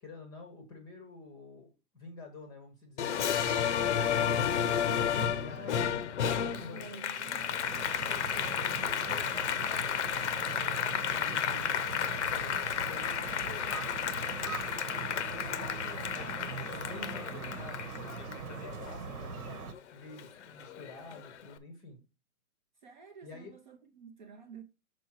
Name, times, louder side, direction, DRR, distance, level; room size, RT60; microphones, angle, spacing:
voice 1, 0.0-4.6 5.3-7.0 8.1-11.7 12.0-12.5 12.8-16.2 16.7-19.6 19.9-22.0 23.2-23.5, left 3 dB, 10° left, 0.8 m, -49 dB
Applause, 3.0-19.8 20.2-21.4, left 8 dB, 55° left, 0.7 m, -32 dB
voice 2, 5.1-6.1 6.4-7.7 22.8-24.6, right 6 dB, 35° right, 0.6 m, -50 dB
sound 1, 7.1-19.7, right 5 dB, 80° right, 1.4 m, -41 dB
6.1 x 4.6 x 4.4 m
hypercardioid pair, 165°, 44 cm